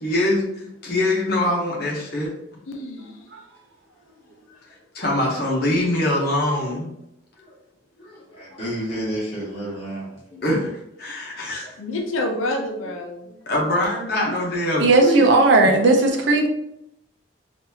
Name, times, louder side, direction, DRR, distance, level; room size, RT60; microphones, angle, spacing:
voice 1, 0.0-2.3 4.9-6.9 8.3-8.6 10.3-11.7 13.5-15.3, left 1 dB, 50° left, -3 dB, 0.9 m, -23 dB
voice 2, 2.7-3.2 11.8-13.3, left 1 dB, 90° left, 2 dB, 0.6 m, -28 dB
voice 3, 8.0-10.2 11.6-11.7, right 1 dB, 30° left, -7 dB, 1.5 m, -32 dB
voice 4, 14.8-16.5, right 2 dB, 65° right, 2 dB, 0.6 m, -16 dB
4.0 x 2.6 x 2.8 m, 0.81 s
head